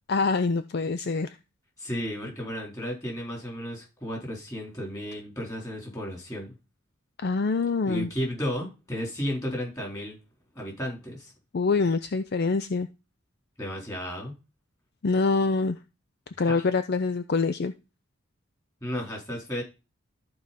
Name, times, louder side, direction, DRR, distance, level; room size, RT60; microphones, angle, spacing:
voice 1, 0.1-1.3 7.2-8.1 11.5-12.9 15.0-15.8 16.4-17.7, left 4 dB, 50° left, 11 dB, 0.5 m, -25 dB
voice 2, 1.8-6.5 7.9-10.2 10.6-11.3 13.6-14.3 16.4-16.7 18.8-19.6, equal, 15° left, -1 dB, 3.7 m, -33 dB
13.5 x 4.7 x 4.2 m, 0.28 s
head